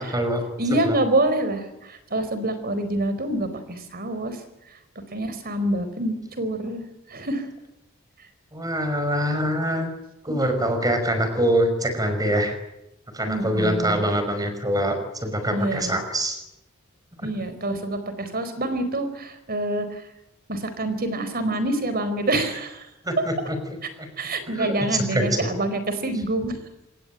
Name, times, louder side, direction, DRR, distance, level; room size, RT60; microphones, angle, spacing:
voice 1, 0.0-0.4 0.7-0.9 8.5-9.9 10.2-12.5 13.1-16.4 23.0-23.6 24.0-24.1 24.5-25.3, equal, 15° right, 7 dB, 5.7 m, -24 dB
voice 2, 0.6-4.4 4.7-4.8 5.1-6.8 7.1-7.5 13.3-14.0 15.5-16.0 17.2-20.0 20.5-22.9 24.2-26.6, right 1 dB, 45° right, 11 dB, 4.3 m, -26 dB
26.5 x 21.5 x 9.1 m, 0.91 s
head